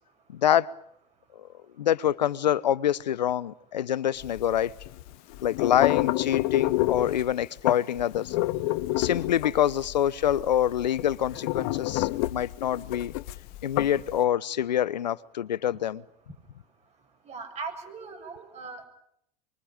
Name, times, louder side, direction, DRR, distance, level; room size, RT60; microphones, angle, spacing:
voice 1, 0.3-0.7 1.4-1.5 1.8-4.7 5.4-8.4 9.0-13.1 13.6-16.0, left 10 dB, 85° left, 20 dB, 1.0 m, -26 dB
sound 1, 4.2-14.2, left 18 dB, 60° left, 1.2 m, -29 dB
voice 2, 17.3-18.9, right 4 dB, 30° right, 6 dB, 7.1 m, -39 dB
25.0 x 24.0 x 8.9 m, 0.74 s
hypercardioid pair, 95°, 21 cm